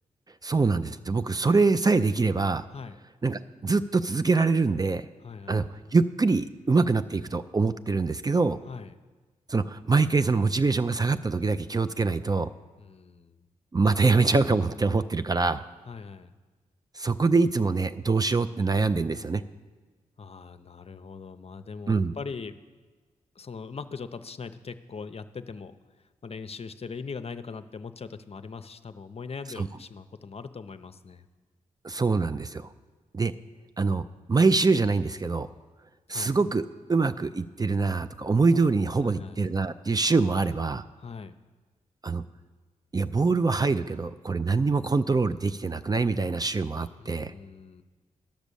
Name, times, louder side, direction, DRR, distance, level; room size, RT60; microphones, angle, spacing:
voice 1, 0.4-2.6 3.2-5.0 5.5-5.6 5.9-8.6 9.5-12.5 13.7-15.6 17.0-19.4 21.9-22.1 29.6-29.7 31.8-32.7 33.1-33.3 33.8-35.5 36.1-40.8 42.0-42.2 42.9-47.3, right 4 dB, 25° right, 11 dB, 0.4 m, -24 dB
voice 2, 5.2-5.7 8.7-9.0 12.8-13.3 15.9-16.3 20.2-22.5 23.4-25.7 26.2-31.3 36.1-36.4 39.0-39.4 41.0-41.3 47.0-47.8, left 5 dB, 45° left, 10 dB, 0.6 m, -40 dB
10.5 x 6.1 x 6.8 m, 1.3 s
supercardioid pair, 45°, 15 cm